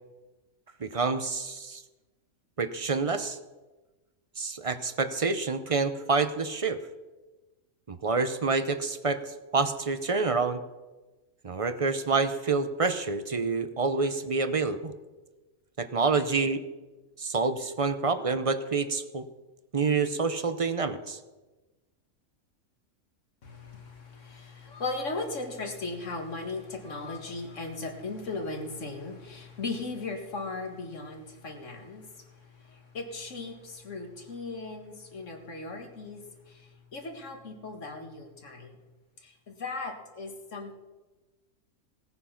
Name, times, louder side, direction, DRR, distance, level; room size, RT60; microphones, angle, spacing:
voice 1, 0.8-1.8 2.6-3.4 4.4-6.8 7.9-10.6 11.4-14.9 15.8-16.6 17.2-19.2 19.7-21.2, right 4 dB, 35° right, 11 dB, 0.6 m, -27 dB
voice 2, 23.4-38.8 39.2-40.7, left 3 dB, 60° left, 4 dB, 2.1 m, -37 dB
17.5 x 9.5 x 5.8 m, 1.2 s
omnidirectional pair, 1.5 m